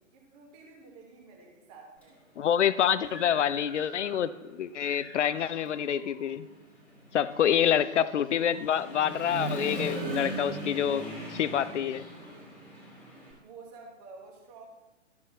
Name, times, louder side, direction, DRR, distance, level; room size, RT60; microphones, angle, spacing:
voice 1, 0.0-2.2 7.3-7.7 13.4-14.7, right 4 dB, 30° right, -1 dB, 1.5 m, -50 dB
Human voice / Motorcycle, 2.0-2.1 2.6-4.4 4.7-13.3, right 2 dB, 5° left, 2.2 m, -40 dB
voice 2, 2.4-6.5 7.1-12.0, left 9 dB, 60° left, 15 dB, 0.6 m, -27 dB
12.5 x 7.0 x 2.9 m, 1.0 s
figure-of-eight pair, 130°, 39 cm